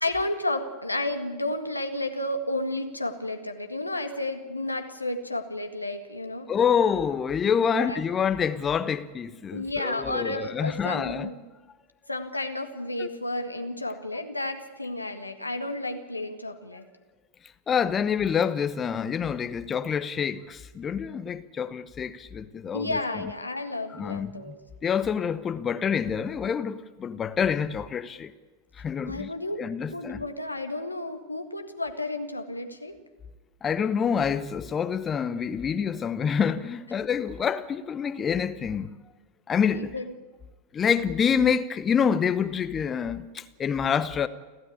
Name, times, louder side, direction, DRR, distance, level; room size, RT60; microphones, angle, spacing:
voice 1, 0.0-6.5 7.7-8.0 9.5-11.4 12.1-16.9 22.7-24.6 29.1-29.6 29.9-33.0 39.7-40.1, left 2 dB, 85° left, 1.8 m, -32 dB
voice 2, 6.5-11.3 13.0-13.1 17.7-23.0 23.9-24.5 24.8-28.3 28.8-29.3 29.6-30.2 33.6-38.9 39.5-40.0 40.7-44.3, left 7 dB, 25° left, 0.8 m, -27 dB
30.0 x 13.0 x 8.6 m
figure-of-eight pair, 90°, 0 cm